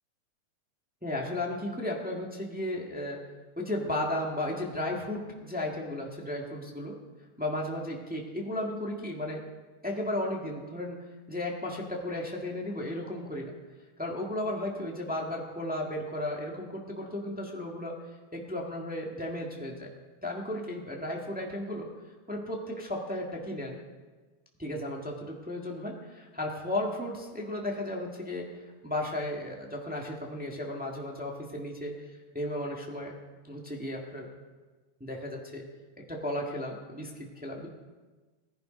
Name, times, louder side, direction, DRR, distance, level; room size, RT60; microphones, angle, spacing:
voice 1, 1.0-3.2 3.6-6.9 7.4-9.4 9.8-11.0 11.3-13.5 14.0-17.9 18.3-19.9 20.2-21.9 22.3-23.8 24.6-28.6 28.8-32.1 32.3-33.1 33.4-34.3 35.0-35.6 36.1-37.7, left 1 dB, 5° right, -1 dB, 0.8 m, -34 dB
19.0 x 11.0 x 5.2 m, 1.3 s
omnidirectional pair, 3.6 m